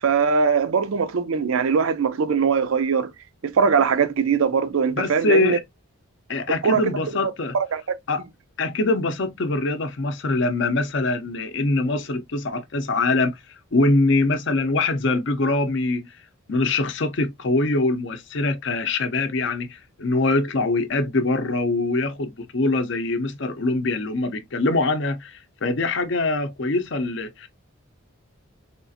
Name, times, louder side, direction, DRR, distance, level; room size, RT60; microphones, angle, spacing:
voice 1, 0.0-3.1 3.4-5.6 6.6-6.9 7.2-8.0, right 6 dB, 75° right, 0.5 m, -21 dB
voice 2, 5.0-5.6 6.3-7.6 8.1-8.2 8.6-13.4 13.7-16.1 16.5-27.5, left 2 dB, 55° left, 0.6 m, -23 dB
3.6 x 2.4 x 2.6 m
head